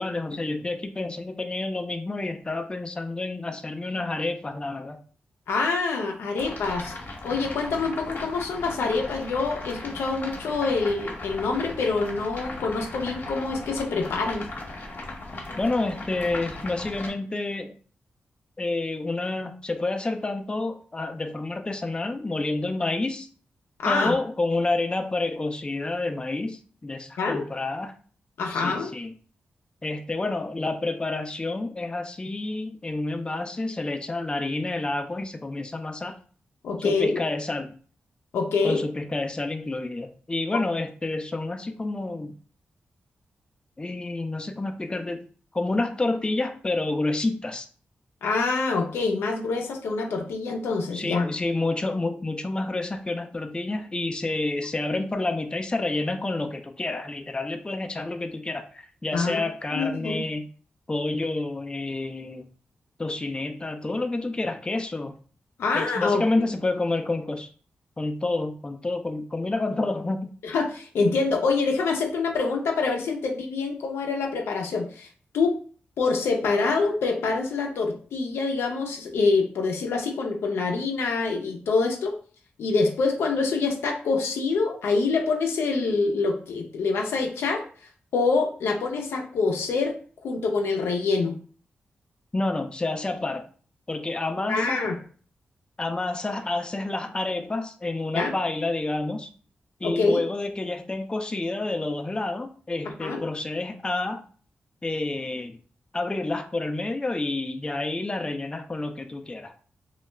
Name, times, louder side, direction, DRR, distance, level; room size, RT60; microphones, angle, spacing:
voice 1, 0.0-5.0 15.6-17.8 18.6-23.3 23.9-27.9 28.5-29.1 29.8-36.1 36.8-37.7 38.6-42.3 43.8-45.2 45.5-47.7 50.9-60.5 60.9-62.4 63.0-65.1 65.7-67.5 68.0-70.3 92.3-93.4 93.9-94.9 95.8-99.3 99.8-104.2 104.8-105.6 105.9-109.5, left 2 dB, 25° left, 6 dB, 0.4 m, -29 dB
voice 2, 5.5-6.9 7.2-14.4 23.8-24.1 27.2-27.4 28.4-28.9 36.6-37.2 38.3-38.8 40.5-40.6 48.2-51.3 59.1-59.4 59.7-60.2 65.6-66.2 70.4-75.1 75.3-75.6 76.0-82.1 82.6-87.6 88.1-89.9 90.2-91.4 94.5-94.9 98.1-98.3 99.8-100.2 103.0-103.2, left 4 dB, 80° left, 2 dB, 0.5 m, -25 dB
sound 1, 6.4-17.1, left 2 dB, 55° left, 0.8 m, -38 dB
2.3 x 2.0 x 3.1 m, 0.42 s
supercardioid pair, 40°, 4 cm